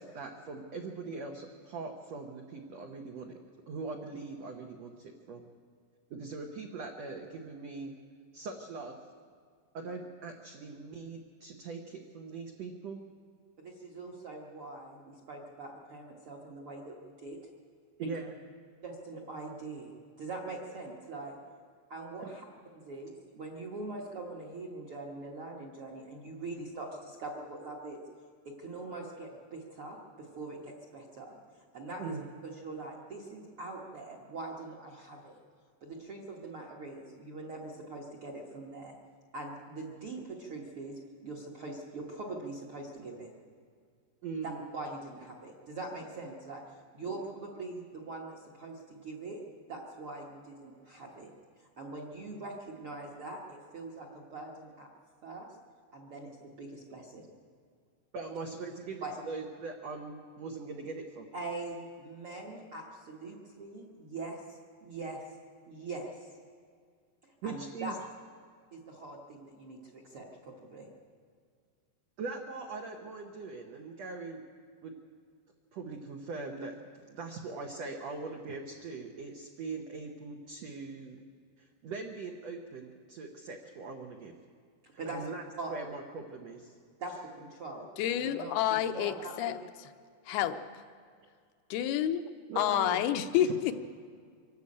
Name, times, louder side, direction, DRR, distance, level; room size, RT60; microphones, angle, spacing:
voice 1, 0.0-3.3 3.7-5.4 6.1-7.9 8.3-9.0 9.7-13.0 18.0-18.4 22.2-22.3 32.0-32.2 44.2-44.6 58.1-61.3 67.4-67.9 72.2-74.4 74.8-74.9 75.7-76.7 77.1-81.2 81.6-84.3 85.1-85.4 85.7-86.8 92.5-93.0 93.4-93.5, right 4 dB, 80° right, 2 dB, 1.4 m, -41 dB
voice 2, 13.6-17.4 18.8-21.3 21.9-22.4 22.7-28.0 28.4-31.3 31.7-32.1 32.4-35.4 35.8-38.9 39.3-43.3 44.7-46.6 46.9-49.4 49.7-51.3 51.8-54.9 55.2-55.5 55.9-57.3 59.0-59.1 61.3-65.2 65.7-66.3 67.4-67.9 68.7-70.9 84.8-85.2 85.6-85.7 87.0-87.9 88.2-89.5 90.4-90.5, right 3 dB, 55° right, 1 dB, 1.5 m, -43 dB
voice 3, 88.0-89.9 90.3-90.6 91.7-92.3 92.6-93.7, left 11 dB, 80° left, 9 dB, 2.5 m, -29 dB
24.0 x 12.5 x 8.6 m, 2.1 s
omnidirectional pair, 4.8 m